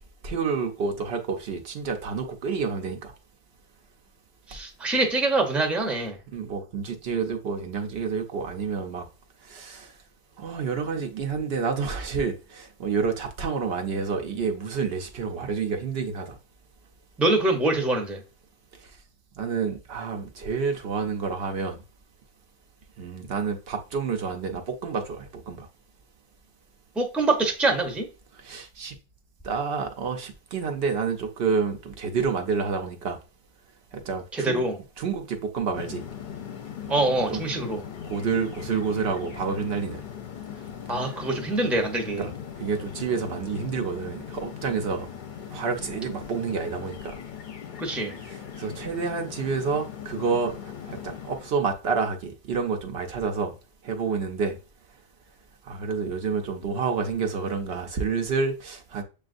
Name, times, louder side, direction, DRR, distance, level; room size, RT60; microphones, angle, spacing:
voice 1, 0.2-3.1 6.3-9.1 9.4-9.9 10.4-16.4 19.4-21.8 23.0-25.7 28.3-28.9 29.4-33.2 33.9-34.6 35.0-36.0 37.3-37.4 38.0-40.0 40.9-41.3 42.1-45.1 45.5-47.1 47.9-53.5 53.8-54.6 55.7-59.0, right 5 dB, 70° right, 0.9 m, -29 dB
voice 2, 4.5-6.2 17.2-18.2 27.0-28.1 34.3-34.7 36.9-37.8 40.9-42.3 47.8-48.1, right 2 dB, ahead, 0.6 m, -24 dB
sound 1, 35.7-51.5, left 8 dB, 55° left, 0.7 m, -39 dB
6.8 x 2.4 x 2.5 m
omnidirectional pair, 1.1 m